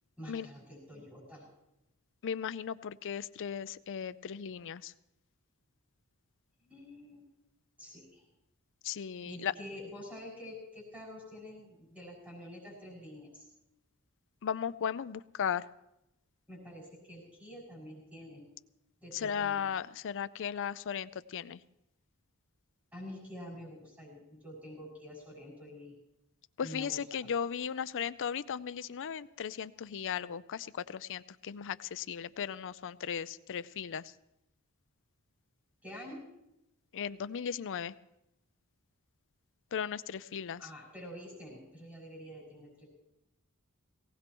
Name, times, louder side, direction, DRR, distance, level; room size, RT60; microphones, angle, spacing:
voice 1, 0.2-1.5 6.6-7.2 7.8-8.2 9.2-13.5 16.5-18.4 19.0-19.7 22.9-26.0 26.6-27.3 35.8-36.2 40.6-42.9, equal, 5° right, -5 dB, 6.0 m, -47 dB
voice 2, 2.2-4.9 8.8-9.5 14.4-15.6 19.1-21.6 26.6-34.0 36.9-37.9 39.7-40.6, left 7 dB, 60° left, 15 dB, 0.5 m, -36 dB
19.0 x 17.5 x 3.0 m, 0.87 s
head